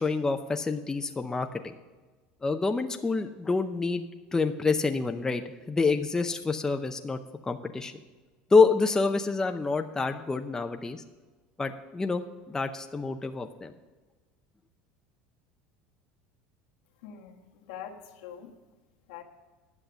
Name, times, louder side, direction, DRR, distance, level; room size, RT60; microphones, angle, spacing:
voice 1, 0.0-1.7 2.4-7.9 8.5-11.0 11.6-12.2 12.5-13.7, left 4 dB, 15° left, 6 dB, 0.6 m, -27 dB
voice 2, 17.0-18.5 19.1-19.2, left 9 dB, 80° left, 2 dB, 1.4 m, -44 dB
10.5 x 6.6 x 7.1 m, 1.3 s
supercardioid pair, 110°, 4 cm